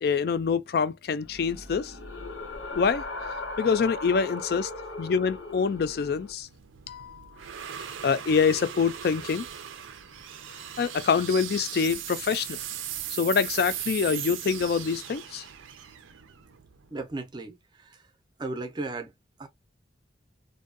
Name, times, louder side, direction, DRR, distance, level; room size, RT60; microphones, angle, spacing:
voice 1, 0.0-1.9 2.7-3.0 3.3-4.7 5.0-6.5 6.9-7.3 8.0-9.5 10.8-12.6 13.1-15.5, left 5 dB, 55° left, 0.3 m, -25 dB
sound 1, 1.2-6.3, left 2 dB, 85° left, 0.9 m, -38 dB
sound 2, 5.9-17.1, right 10 dB, 90° right, 0.5 m, -38 dB
voice 2, 16.9-18.0 18.4-19.1 19.4-19.5, right 2 dB, 20° right, 0.5 m, -35 dB
2.6 x 2.2 x 2.4 m
head